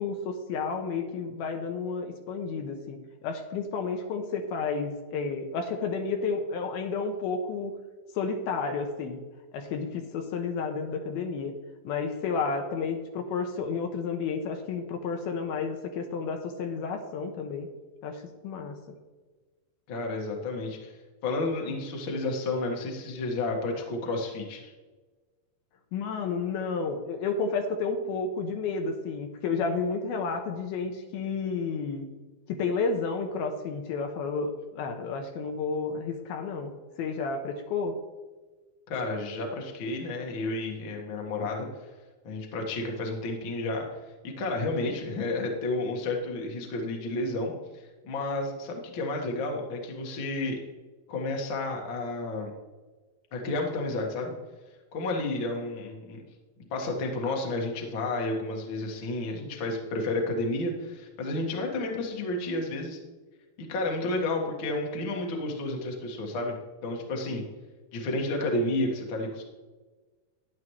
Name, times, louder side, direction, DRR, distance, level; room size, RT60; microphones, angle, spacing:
voice 1, 0.0-7.7 8.1-9.2 9.5-11.5 11.8-17.7 18.0-18.8 25.9-32.1 32.5-36.7 37.0-38.0, left 4 dB, 75° left, 4 dB, 2.6 m, -31 dB
voice 2, 19.9-20.9 21.2-24.7 38.9-41.7 42.2-43.8 44.4-50.6 51.1-52.5 53.3-54.3 54.9-56.2 56.7-63.0 63.6-66.6 66.8-67.4 67.9-69.4, left 2 dB, 50° left, 0 dB, 1.6 m, -31 dB
12.0 x 10.5 x 3.2 m, 1.3 s
omnidirectional pair, 4.7 m